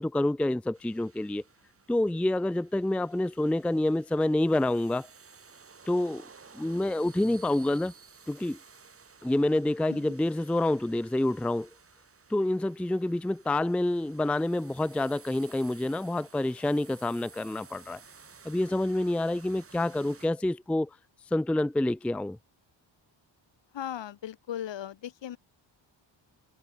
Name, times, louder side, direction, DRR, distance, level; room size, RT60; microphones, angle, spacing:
voice 1, 0.0-1.4 1.9-5.1 5.9-6.2 6.5-7.9 8.3-8.6 9.2-11.7 12.3-18.0 18.4-20.9 21.3-22.4, left 1 dB, 5° left, 0.5 m, -27 dB
sound 1, 0.7-20.3, right 5 dB, 30° right, 2.9 m, -55 dB
voice 2, 23.7-25.4, left 10 dB, 70° left, 2.4 m, -37 dB
wide cardioid pair, 160°, 46 cm